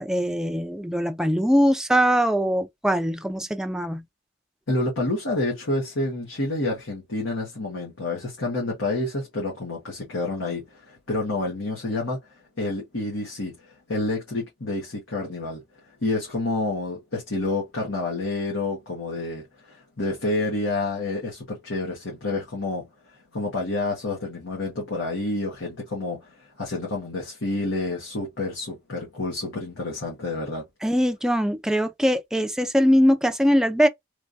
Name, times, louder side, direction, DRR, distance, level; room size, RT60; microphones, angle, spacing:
voice 1, 0.0-4.0 30.8-33.9, equal, 5° right, 0.3 m, -22 dB
voice 2, 4.7-12.2 12.6-15.6 16.0-22.9 23.3-30.6, left 2 dB, 90° left, 1.5 m, -29 dB
3.3 x 3.1 x 2.7 m
head